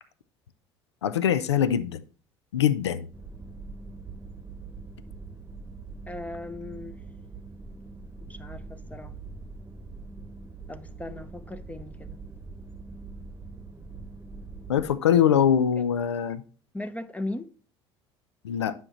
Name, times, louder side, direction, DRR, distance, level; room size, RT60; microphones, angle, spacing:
voice 1, 1.0-2.0 2.5-3.1 14.7-16.4 18.4-18.7, left 9 dB, 85° left, 0.5 m, -23 dB
sound 1, 3.1-14.9, right 3 dB, 15° right, 1.2 m, -43 dB
voice 2, 6.1-7.0 8.3-9.1 10.7-12.2 16.7-17.5, left 2 dB, 10° left, 0.8 m, -37 dB
9.7 x 5.8 x 3.0 m
hypercardioid pair, 65°, 14 cm